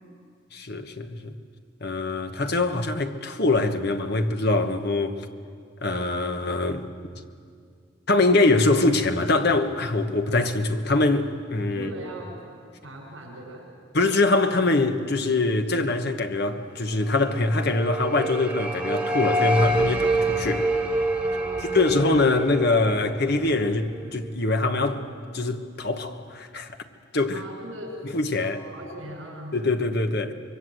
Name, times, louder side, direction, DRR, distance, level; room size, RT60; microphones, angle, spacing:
voice 1, 0.5-1.4 1.8-5.3 5.8-6.9 7.1-7.2 8.1-11.9 13.9-20.7 21.6-25.0 25.3-26.8 27.1-27.4 28.0-28.6 29.5-30.3, left 2 dB, 55° left, 1.3 m, -23 dB
voice 2, 11.7-12.3 12.8-13.6 21.2-21.8 27.3-28.0 28.3-29.5, right 1 dB, 75° right, 6.4 m, -39 dB
sound 1, 17.3-24.3, right 1 dB, 5° right, 1.6 m, -27 dB
25.5 x 22.5 x 7.8 m
head